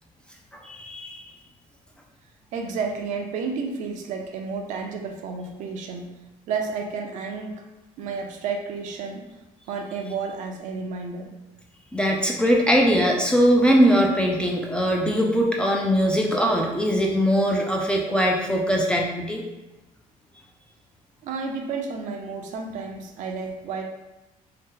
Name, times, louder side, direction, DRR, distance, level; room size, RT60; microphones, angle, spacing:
voice 1, 0.6-1.2 11.9-19.4, equal, 5° left, -1 dB, 0.4 m, -21 dB
voice 2, 2.5-6.1 6.5-7.6 8.0-9.2 9.7-11.3 21.2-23.8, right 5 dB, 60° right, 3 dB, 0.5 m, -31 dB
2.8 x 2.1 x 3.6 m, 1.0 s
cardioid pair, 135°, 14 cm